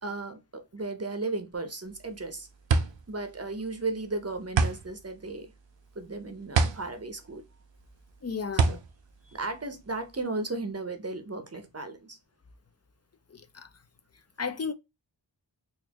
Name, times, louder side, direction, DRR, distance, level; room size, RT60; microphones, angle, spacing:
voice 1, 0.0-2.5 3.1-5.5 6.0-7.4 8.7-8.8 9.3-12.2, right 3 dB, 35° right, 0.7 m, -35 dB
sound 1, 1.9-10.2, right 4 dB, 75° right, 0.6 m, -29 dB
voice 2, 8.2-8.8 13.3-13.7 14.4-14.7, left 5 dB, 35° left, 0.5 m, -34 dB
4.1 x 2.5 x 2.8 m
wide cardioid pair, 50°, 45 cm